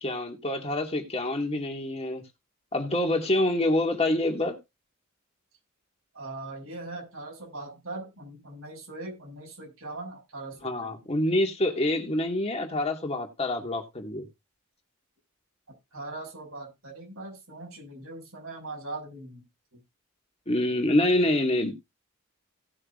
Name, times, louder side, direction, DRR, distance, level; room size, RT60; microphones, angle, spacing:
voice 1, 0.0-2.2 2.7-4.6 10.6-14.2 20.5-21.7, left 1 dB, 30° left, 2.3 m, -26 dB
voice 2, 6.1-11.0 15.9-19.4 19.7-19.8, right 2 dB, 75° right, 6.2 m, -40 dB
18.0 x 6.5 x 2.6 m
head